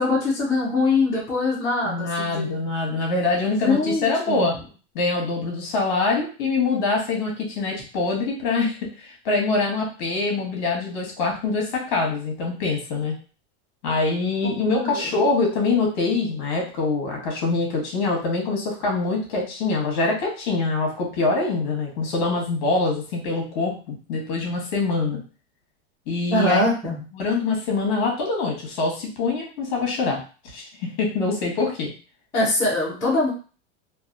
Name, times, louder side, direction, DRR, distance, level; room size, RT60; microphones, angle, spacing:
voice 1, 0.0-2.5 3.5-4.5 14.7-15.1 26.3-27.0 32.3-33.3, left 2 dB, 10° left, -9 dB, 0.5 m, -23 dB
voice 2, 1.8-4.5 4.9-13.1 13.8-25.2 26.1-26.6 27.1-30.2 30.5-31.9, left 3 dB, 45° left, -1 dB, 1.0 m, -24 dB
2.8 x 2.3 x 2.4 m, 0.36 s
supercardioid pair, 180°, 33 cm